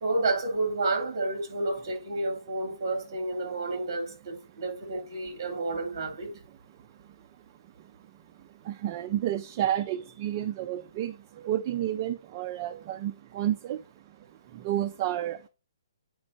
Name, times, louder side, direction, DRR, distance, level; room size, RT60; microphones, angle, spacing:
voice 1, 0.0-6.3, right 2 dB, 45° right, 2.9 m, -30 dB
voice 2, 8.4-15.5, right 12 dB, 25° right, 0.4 m, -31 dB
9.2 x 5.2 x 3.9 m
hypercardioid pair, 165°, 3 cm